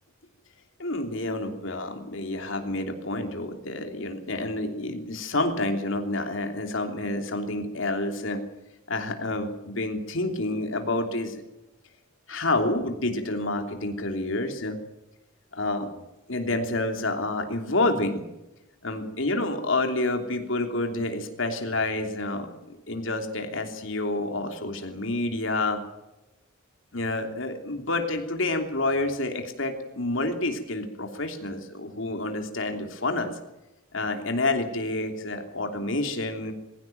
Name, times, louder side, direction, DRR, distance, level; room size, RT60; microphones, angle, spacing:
voice 1, 0.8-8.4 8.9-11.4 12.3-14.8 15.5-15.9 16.3-18.2 18.8-25.8 26.9-33.4 33.9-36.5, left 2 dB, 65° left, 5 dB, 3.1 m, -28 dB
22.0 x 16.5 x 9.2 m, 0.96 s
head